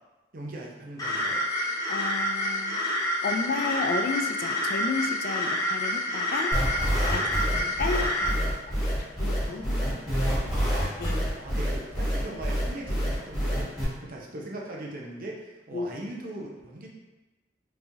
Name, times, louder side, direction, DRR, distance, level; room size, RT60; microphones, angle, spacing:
voice 1, 0.3-1.4 7.1-7.3 9.2-10.9 11.3-13.7 14.0-16.9, right 1 dB, 55° right, -2 dB, 0.6 m, -40 dB
sound 1, 1.0-8.3, left 1 dB, 20° left, 0.7 m, -28 dB
voice 2, 1.9-2.8 3.2-6.5 7.1-8.9 9.2-9.8 11.0-11.3 15.7-15.9, left 4 dB, 55° left, 5 dB, 0.3 m, -32 dB
sound 2, 6.5-13.8, equal, ahead, 1.4 m, -27 dB
3.5 x 3.0 x 2.6 m, 1.1 s
head